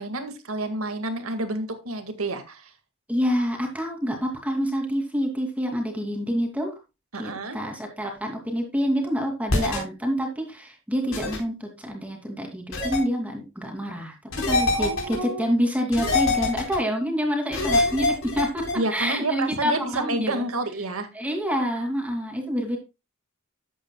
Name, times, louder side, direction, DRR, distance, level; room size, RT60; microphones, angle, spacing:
voice 1, 0.0-2.7 7.1-7.6 14.7-15.5 18.7-21.1, right 2 dB, 85° right, 8 dB, 1.9 m, -29 dB
voice 2, 3.1-6.7 7.2-14.1 14.5-18.6 18.9-20.4 21.1-22.8, equal, 5° right, 2 dB, 2.6 m, -27 dB
sound 1, 9.5-9.8 11.1-11.4 12.7-13.0 14.3-15.1 15.9-16.8 17.5-18.7, left 2 dB, 65° left, 4.2 m, -24 dB
13.0 x 8.8 x 2.3 m, 0.25 s
head